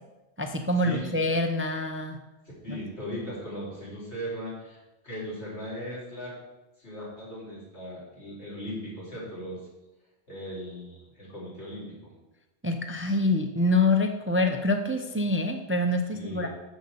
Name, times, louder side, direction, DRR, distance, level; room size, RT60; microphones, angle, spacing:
voice 1, 0.4-2.2 2.7-2.8 12.6-16.5, left 2 dB, 15° right, 5 dB, 0.5 m, -26 dB
voice 2, 2.6-6.3 6.8-9.7 10.3-12.1 16.1-16.5, equal, 80° left, -6 dB, 4.4 m, -38 dB
7.2 x 6.6 x 6.9 m, 1.0 s
omnidirectional pair, 1.1 m